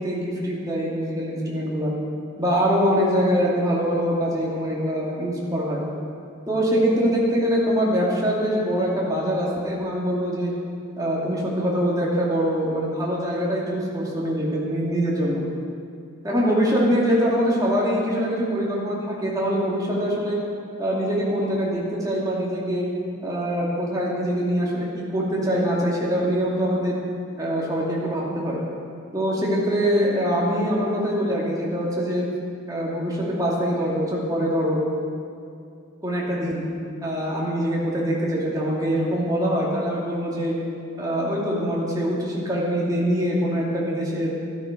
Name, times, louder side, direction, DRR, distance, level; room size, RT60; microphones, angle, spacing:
voice 1, 0.0-1.9 2.4-5.8 6.5-10.5 11.0-15.4 16.2-20.4 20.8-22.9 23.2-27.0 27.4-28.6 29.1-32.3 32.7-34.8 36.0-36.6 37.0-40.5 41.0-44.3, equal, 15° right, -5 dB, 2.5 m, -23 dB
13.0 x 13.0 x 5.2 m, 2.4 s
head